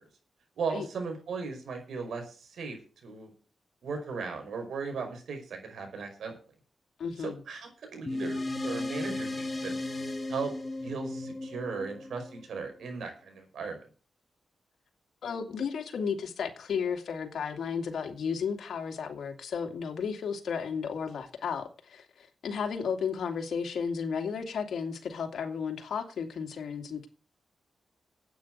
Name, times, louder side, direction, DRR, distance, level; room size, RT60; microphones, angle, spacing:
voice 1, 0.6-3.3 3.8-6.4 7.2-9.8 10.3-10.5 10.8-13.8, right 5 dB, 80° right, 5.3 m, -37 dB
voice 2, 7.0-7.4 15.2-27.1, left 6 dB, 80° left, 2.4 m, -33 dB
sound 1, 8.1-12.9, left 2 dB, 30° left, 1.9 m, -35 dB
9.4 x 9.0 x 8.0 m
cardioid pair, 60°, 0 cm